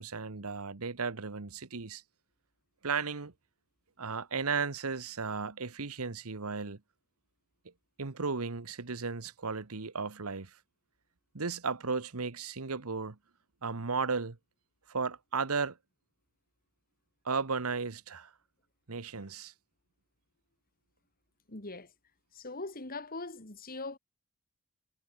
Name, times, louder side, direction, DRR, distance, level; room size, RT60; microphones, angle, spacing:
voice 1, 0.0-2.0 2.8-3.3 4.0-6.8 8.0-10.5 11.3-13.2 13.6-14.4 14.9-15.8 17.2-18.3 18.9-19.5, right 5 dB, 80° right, 1.2 m, -35 dB
voice 2, 21.5-21.9 22.3-24.0, left 3 dB, 40° left, 2.8 m, -41 dB
head